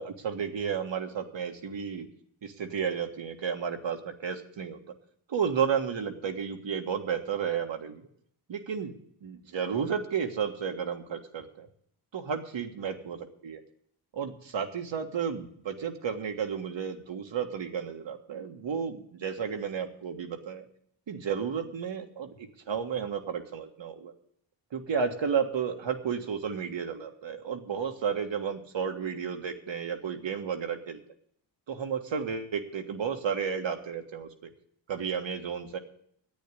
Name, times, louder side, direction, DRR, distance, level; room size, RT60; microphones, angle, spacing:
voice 1, 0.0-2.1 2.4-4.8 5.3-8.1 8.5-8.9 9.2-11.7 12.1-13.2 13.4-13.6 14.1-20.7 21.1-24.1 24.7-31.0 31.7-34.5 34.9-35.8, right 7 dB, 65° right, 5 dB, 1.7 m, -32 dB
10.5 x 8.7 x 9.8 m, 0.66 s
cardioid pair, 50°, 48 cm